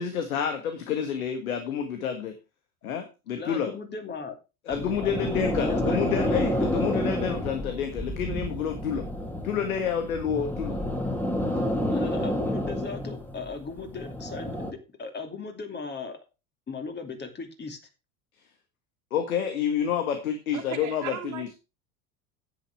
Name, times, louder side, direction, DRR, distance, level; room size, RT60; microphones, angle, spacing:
voice 1, 0.0-2.3 2.8-3.7 4.7-9.0 9.4-10.8 19.1-21.5, left 7 dB, 70° left, 7 dB, 1.7 m, -29 dB
voice 2, 3.4-4.3 4.7-6.4 11.9-16.2 16.7-17.8, left 4 dB, 25° left, 5 dB, 2.7 m, -37 dB
sound 1, 4.7-14.7, left 1 dB, 5° left, 2.4 m, -29 dB
voice 3, 20.5-21.5, right 9 dB, 45° right, 2 dB, 2.3 m, -37 dB
10.0 x 8.8 x 4.6 m, 0.29 s
figure-of-eight pair, 75°, 43 cm